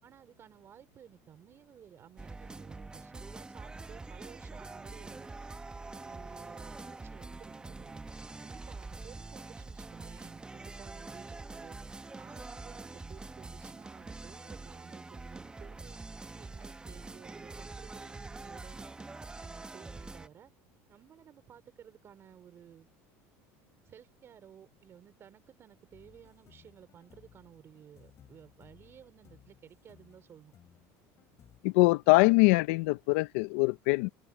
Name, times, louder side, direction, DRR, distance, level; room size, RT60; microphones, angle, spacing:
voice 1, 0.0-5.3 5.8-8.0 8.4-11.8 12.1-16.0 16.3-18.9 19.4-20.5 20.9-22.9 23.8-30.5, right 9 dB, 35° right, 3.4 m, -55 dB
sound 1, 2.2-20.3, right 3 dB, 10° right, 0.9 m, -45 dB
sound 2, 25.9-31.6, left 10 dB, 40° left, 4.9 m, -61 dB
voice 2, 31.6-34.1, left 25 dB, 80° left, 0.6 m, -23 dB
supercardioid pair, 120°, 7 cm